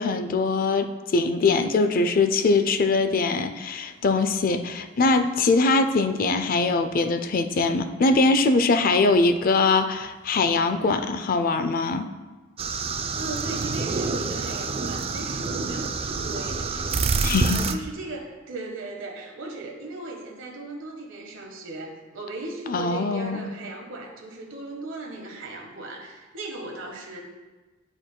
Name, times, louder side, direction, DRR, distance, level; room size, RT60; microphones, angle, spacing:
voice 1, 0.0-12.1 17.2-17.6 22.7-23.5, left 3 dB, 45° left, 9 dB, 0.4 m, -22 dB
sound 1, 12.6-17.7, right 4 dB, 30° right, 0.3 m, -27 dB
voice 2, 13.2-16.9 17.4-27.2, right 2 dB, 80° right, 0 dB, 1.4 m, -37 dB
11.0 x 4.4 x 2.2 m, 1.2 s
head